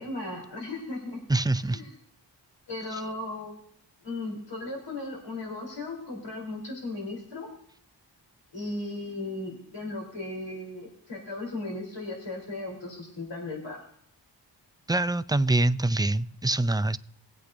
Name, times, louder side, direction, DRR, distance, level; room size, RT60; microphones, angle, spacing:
voice 1, 0.0-1.2 1.7-1.9 2.7-3.6 4.0-7.5 8.5-13.8, left 2 dB, 70° left, -1 dB, 3.9 m, -36 dB
voice 2, 1.3-1.8 14.9-17.0, right 2 dB, 10° right, 13 dB, 0.4 m, -25 dB
20.0 x 8.5 x 2.6 m, 0.66 s
cardioid pair, 60°, 45 cm